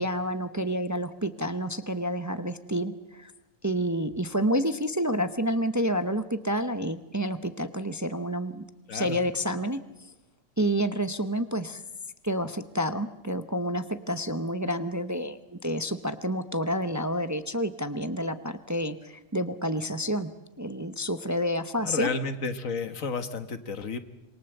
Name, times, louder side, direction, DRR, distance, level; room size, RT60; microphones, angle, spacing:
voice 1, 0.0-3.3 3.6-8.6 8.9-9.8 10.6-11.8 12.2-20.3 20.6-22.1, equal, 15° right, 10 dB, 0.7 m, -29 dB
voice 2, 21.8-24.0, left 4 dB, 80° left, 10 dB, 1.8 m, -31 dB
26.5 x 23.0 x 7.9 m, 1.0 s
omnidirectional pair, 1.4 m